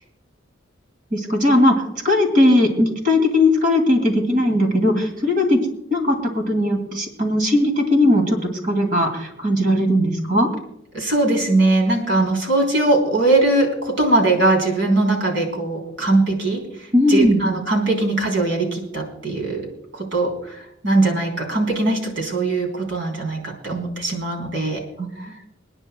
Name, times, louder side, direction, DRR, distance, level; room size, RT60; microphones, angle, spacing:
voice 1, 1.1-5.6 5.9-8.4 8.6-10.5 16.9-17.4 25.0-25.1, left 1 dB, 40° right, 3 dB, 2.4 m, -18 dB
voice 2, 10.9-16.6 17.1-19.6 19.9-24.8 25.2-25.3, right 2 dB, 65° right, 0 dB, 3.6 m, -20 dB
28.5 x 9.9 x 2.3 m, 0.80 s
head